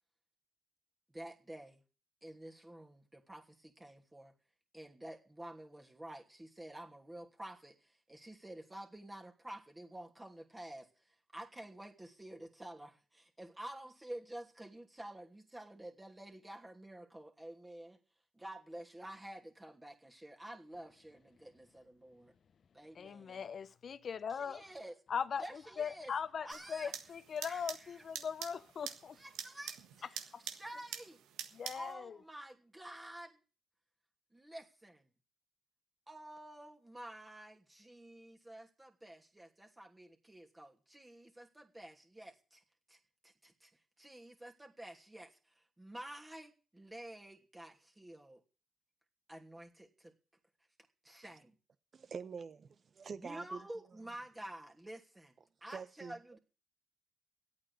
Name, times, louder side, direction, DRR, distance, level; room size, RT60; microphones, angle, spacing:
voice 1, 1.1-1.8 2.2-4.3 4.7-18.0 18.3-22.3 22.7-23.5 24.4-24.9 25.4-26.1 26.4-26.9 27.4-27.6 27.9-28.0 29.2-29.8 30.4-31.2 31.7-33.4 34.3-35.1 36.1-42.6 42.9-43.7 44.0-48.4 49.3-50.1 51.0-51.5 53.2-55.3 55.6-56.4, right 1 dB, 15° right, 2.8 m, -50 dB
voice 2, 22.9-24.7 25.1-29.2 30.0-30.4 31.5-32.2, left 7 dB, 55° left, 1.0 m, -40 dB
sound 1, 26.5-31.9, right 9 dB, 80° right, 1.5 m, -47 dB
voice 3, 51.9-53.7 55.7-56.2, right 5 dB, 50° right, 1.2 m, -46 dB
12.0 x 8.6 x 8.5 m
supercardioid pair, 60°, 0 cm